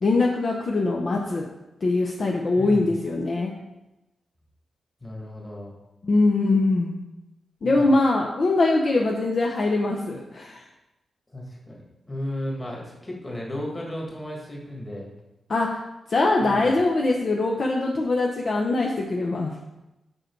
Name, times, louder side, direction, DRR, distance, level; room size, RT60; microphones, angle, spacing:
voice 1, 0.0-1.5 1.8-3.5 6.0-6.9 7.6-10.6 15.5-15.8 16.1-19.5, left 2 dB, 40° left, 0 dB, 0.8 m, -22 dB
voice 2, 2.6-2.9 5.0-5.7 7.6-7.9 11.3-15.1 16.4-16.8, left 1 dB, 15° left, -2 dB, 1.8 m, -34 dB
7.6 x 6.1 x 4.6 m, 0.95 s
wide cardioid pair, 160°, 0 cm